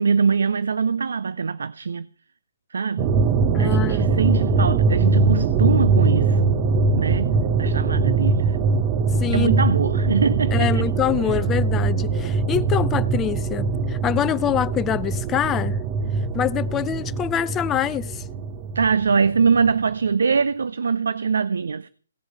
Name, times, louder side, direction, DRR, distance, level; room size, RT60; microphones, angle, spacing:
voice 1, 0.0-2.1 2.7-3.1 3.6-6.6 6.9-8.6 9.3-10.8 18.7-21.9, right 5 dB, 65° right, 0.6 m, -23 dB
sound 1, 3.0-19.7, right 4 dB, 25° right, 1.0 m, -22 dB
voice 2, 3.5-4.1 9.2-9.6 10.5-15.8 16.3-18.2, left 10 dB, 15° left, 0.6 m, -25 dB
17.5 x 7.9 x 6.8 m
figure-of-eight pair, 135°, 0 cm